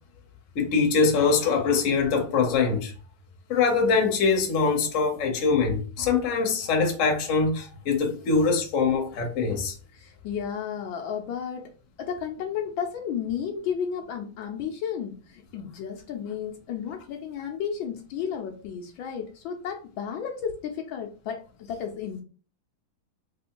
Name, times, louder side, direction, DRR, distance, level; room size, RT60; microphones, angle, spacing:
voice 1, 0.5-2.9 3.5-9.7, left 4 dB, 50° left, 1.0 m, -23 dB
voice 2, 9.9-11.7 12.0-22.2, left 7 dB, 75° left, 1.3 m, -33 dB
3.4 x 3.1 x 2.9 m
omnidirectional pair, 2.3 m